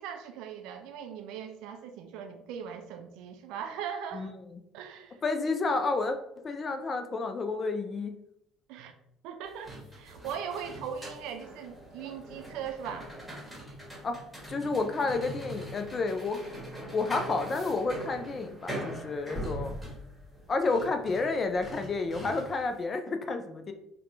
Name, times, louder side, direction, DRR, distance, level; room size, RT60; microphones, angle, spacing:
voice 1, 0.0-4.3 4.7-5.2 8.7-8.9 9.2-13.1, right 7 dB, 60° right, 6 dB, 0.3 m, -39 dB
voice 2, 5.2-6.2 6.4-8.2 14.0-14.2 14.5-16.4 16.9-19.7 20.5-23.7, left 3 dB, 35° left, 7 dB, 0.4 m, -30 dB
sound 1, 9.5-22.7, right 1 dB, ahead, 1.4 m, -42 dB
4.0 x 2.2 x 2.7 m, 0.78 s
figure-of-eight pair, 55°, 0 cm